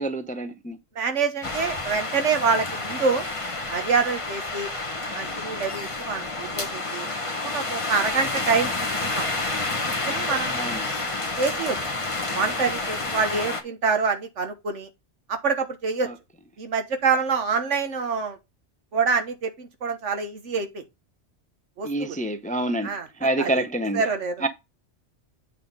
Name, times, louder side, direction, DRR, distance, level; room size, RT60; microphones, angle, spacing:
voice 1, 0.0-0.8 10.5-10.8 16.0-16.1 21.8-24.0 24.4-24.5, right 1 dB, 10° left, 0.5 m, -27 dB
voice 2, 0.9-3.2 3.7-4.7 5.1-7.1 7.4-9.3 9.8-10.6 11.4-11.8 12.3-14.9 15.3-16.1 16.6-18.4 18.9-20.8 21.8-22.2 22.8-23.1 23.4-23.6 23.9-24.4, right 5 dB, 75° right, 1.5 m, -26 dB
sound 1, 1.4-13.6, left 2 dB, 30° left, 1.2 m, -29 dB
8.4 x 3.8 x 5.3 m
omnidirectional pair, 1.2 m